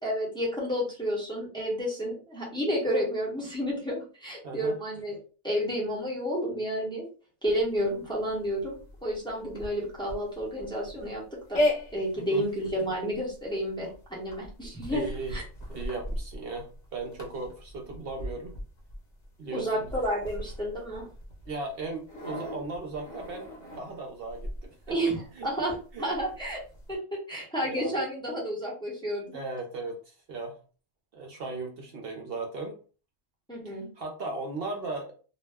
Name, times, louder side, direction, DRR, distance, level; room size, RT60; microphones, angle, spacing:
voice 1, 0.0-5.2 5.4-7.1 7.4-11.6 11.9-15.0 15.3-15.4 19.5-21.0 24.9-26.6 26.9-29.4 33.5-33.9, equal, 5° left, -4 dB, 0.8 m, -31 dB
voice 2, 4.4-4.7 12.1-12.4 14.9-15.4 15.7-18.6 19.4-19.9 21.5-25.5 25.9-26.1 27.6-28.0 29.3-30.6 31.1-32.8 33.6-35.1, right 3 dB, 65° right, 2 dB, 0.7 m, -37 dB
sound 1, 7.4-26.9, left 1 dB, 45° left, 0.8 m, -38 dB
2.2 x 2.0 x 3.3 m, 0.37 s
omnidirectional pair, 1.1 m